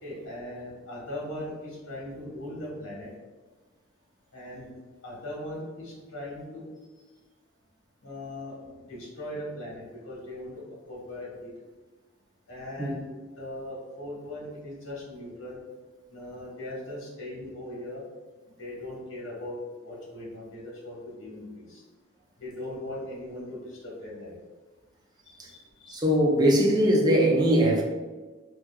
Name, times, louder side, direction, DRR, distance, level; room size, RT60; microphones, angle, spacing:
voice 1, 0.0-3.1 4.3-4.7 5.0-6.6 8.0-10.5 10.9-11.5 12.5-13.1 13.4-15.6 16.1-18.0 18.6-21.8 22.4-23.6 23.8-24.3 25.3-26.0, left 1 dB, 65° left, -5 dB, 1.3 m, -39 dB
voice 2, 25.9-27.8, equal, 20° right, -2 dB, 0.5 m, -21 dB
4.6 x 2.4 x 2.3 m, 1.3 s
head